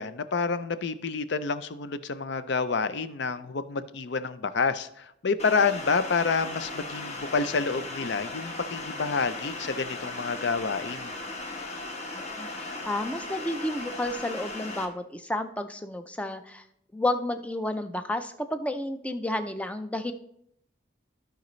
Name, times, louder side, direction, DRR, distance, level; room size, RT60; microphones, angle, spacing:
voice 1, 0.0-11.1, left 4 dB, 60° left, 12 dB, 0.5 m, -28 dB
sound 1, 5.4-14.9, left 2 dB, 35° left, 1.1 m, -37 dB
voice 2, 12.1-16.6 16.9-20.1, left 1 dB, 5° left, 9 dB, 0.4 m, -31 dB
14.5 x 5.1 x 3.1 m, 0.74 s
head